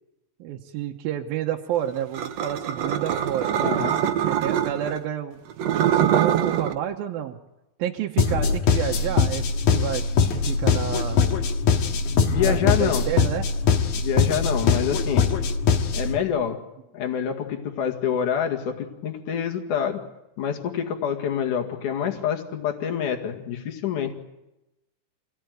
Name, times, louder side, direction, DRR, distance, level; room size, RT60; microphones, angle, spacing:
voice 1, 0.4-3.5 4.3-5.4 5.7-7.4 7.8-10.0 10.3-11.2 12.4-13.5, right 10 dB, 85° right, 1 dB, 2.9 m, -30 dB
sound 1, 2.1-5.0 5.5-6.7, right 10 dB, 65° right, 1.8 m, -23 dB
voice 2, 3.6-4.0 12.1-13.1 14.0-15.3 15.9-16.6 16.9-20.0 20.4-24.1, left 8 dB, 60° left, 3 dB, 3.4 m, -27 dB
sound 2, 8.2-16.2, left 5 dB, 80° left, 3.4 m, -22 dB
27.5 x 18.0 x 9.4 m, 0.97 s
omnidirectional pair, 4.1 m